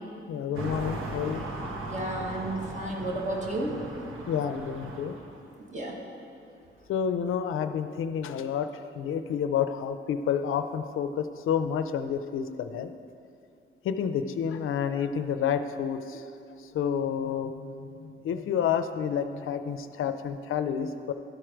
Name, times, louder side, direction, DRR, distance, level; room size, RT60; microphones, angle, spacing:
voice 1, 0.3-1.5 4.3-5.1 6.9-8.7 9.0-12.9 13.8-16.3 16.6-21.1, left 8 dB, 80° left, 9 dB, 0.5 m, -29 dB
sound 1, 0.5-5.4, right 2 dB, 85° right, 1.0 m, -38 dB
voice 2, 1.9-3.8 5.7-6.0, right 1 dB, 35° right, 0 dB, 1.3 m, -32 dB
12.5 x 4.5 x 5.0 m, 2.4 s
wide cardioid pair, 130°, 21 cm